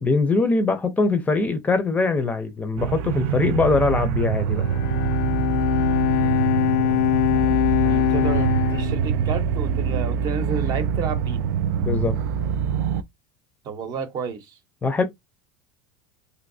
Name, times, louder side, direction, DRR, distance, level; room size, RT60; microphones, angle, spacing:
voice 1, 0.0-4.6 11.8-12.2 14.8-15.0, left 3 dB, 15° left, 0.5 m, -22 dB
sound 1, 2.8-13.0, right 7 dB, 80° right, 0.4 m, -24 dB
Bowed string instrument, 4.5-9.9, left 15 dB, 80° left, 0.4 m, -23 dB
voice 2, 7.8-11.4 13.6-14.6, right 6 dB, 40° right, 0.8 m, -30 dB
3.2 x 2.7 x 2.6 m
supercardioid pair, 135°, 10 cm